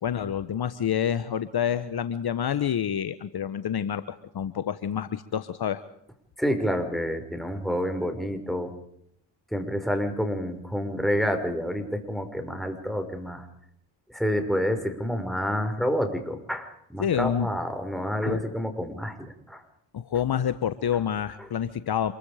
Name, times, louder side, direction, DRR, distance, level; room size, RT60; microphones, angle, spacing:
voice 1, 0.0-5.8 17.0-17.5 18.2-18.4 19.9-22.1, left 9 dB, 50° left, 13 dB, 1.3 m, -28 dB
voice 2, 6.4-8.7 9.5-13.5 14.1-19.6, equal, ahead, 6 dB, 5.7 m, -28 dB
26.5 x 23.0 x 5.1 m, 0.72 s
supercardioid pair, 55°, 50 cm